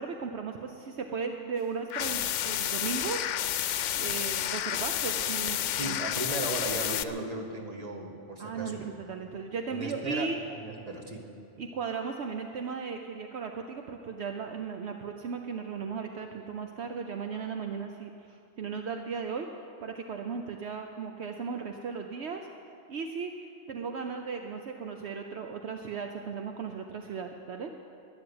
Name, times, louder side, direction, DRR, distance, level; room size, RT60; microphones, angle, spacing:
voice 1, 0.0-3.5 4.0-6.0 8.4-10.4 11.6-19.5 19.8-22.4 22.9-27.7, right 5 dB, 70° right, 4 dB, 1.0 m, -36 dB
sound 1, 1.9-7.0, left 11 dB, 85° left, 0.9 m, -30 dB
voice 2, 5.8-8.9 9.3-9.4 9.7-10.3 10.6-11.3, right 2 dB, 35° right, 2 dB, 1.7 m, -36 dB
12.5 x 11.5 x 9.6 m, 2.6 s
omnidirectional pair, 1.2 m